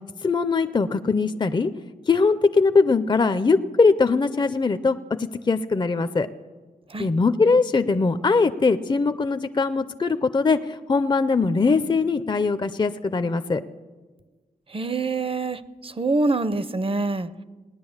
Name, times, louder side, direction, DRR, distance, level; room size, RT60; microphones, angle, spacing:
voice 1, 0.2-1.7 2.1-6.3 7.0-13.6, left 4 dB, 30° left, 11 dB, 0.5 m, -21 dB
voice 2, 14.7-17.3, right 3 dB, 35° right, 15 dB, 0.7 m, -25 dB
18.0 x 10.0 x 7.2 m, 1.3 s
wide cardioid pair, 80°, 16 cm